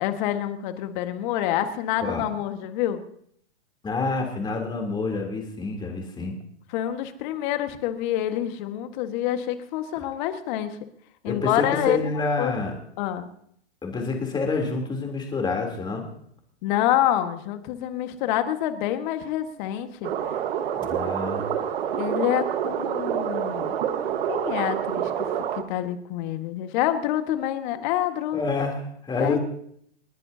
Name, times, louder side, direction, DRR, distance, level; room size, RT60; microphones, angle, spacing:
voice 1, 0.0-3.0 6.7-10.8 11.2-12.5 13.0-13.3 16.6-20.1 21.9-23.7 24.3-25.4 25.7-28.4 29.2-29.4, left 12 dB, 45° left, 8 dB, 1.7 m, -27 dB
voice 2, 3.8-6.3 11.2-12.7 13.8-16.1 20.8-21.4 28.3-29.4, left 3 dB, 15° left, 2 dB, 3.4 m, -28 dB
sound 1, 20.0-25.6, right 9 dB, 60° right, 1.6 m, -27 dB
29.5 x 10.5 x 2.8 m, 0.67 s
hypercardioid pair, 120°, 33 cm